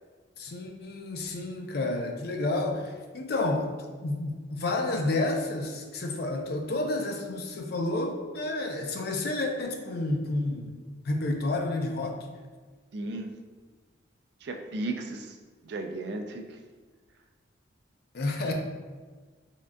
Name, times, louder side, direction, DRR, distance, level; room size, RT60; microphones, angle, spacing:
voice 1, 0.4-3.7 4.0-10.7 11.0-12.2 18.1-18.5, left 2 dB, 55° left, 2 dB, 0.4 m, -30 dB
voice 2, 12.9-13.3 14.4-15.4 15.6-16.6, right 2 dB, 55° right, 4 dB, 0.4 m, -35 dB
3.7 x 3.5 x 2.2 m, 1.4 s
head